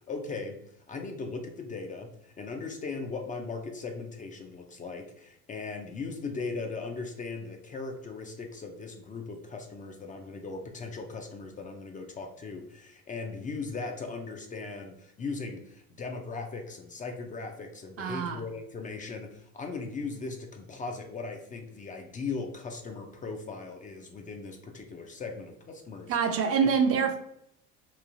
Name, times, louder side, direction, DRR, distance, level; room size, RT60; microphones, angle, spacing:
voice 1, 0.1-0.6 0.9-26.2, left 4 dB, 25° left, 4 dB, 0.4 m, -38 dB
voice 2, 18.0-18.4 26.1-27.2, right 6 dB, 50° right, 6 dB, 0.5 m, -25 dB
3.0 x 2.3 x 2.5 m, 0.73 s
supercardioid pair, 100°, 30 cm